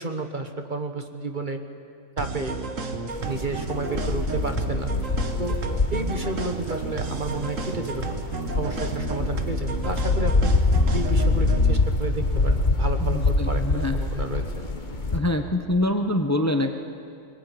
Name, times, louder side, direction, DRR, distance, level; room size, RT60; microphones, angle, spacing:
voice 1, 0.0-1.6 2.2-2.6 3.3-4.9 5.4-5.6 5.9-8.2 8.6-10.5 10.9-14.4, right 3 dB, 40° right, 6 dB, 1.6 m, -31 dB
sound 1, 2.2-11.8, right 4 dB, 75° right, 1.9 m, -32 dB
sound 2, 3.1-15.2, left 3 dB, 35° left, 1.6 m, -25 dB
voice 2, 13.0-14.0 15.1-16.8, left 1 dB, 15° left, 6 dB, 1.0 m, -25 dB
22.5 x 21.0 x 9.4 m, 2.4 s
omnidirectional pair, 1.3 m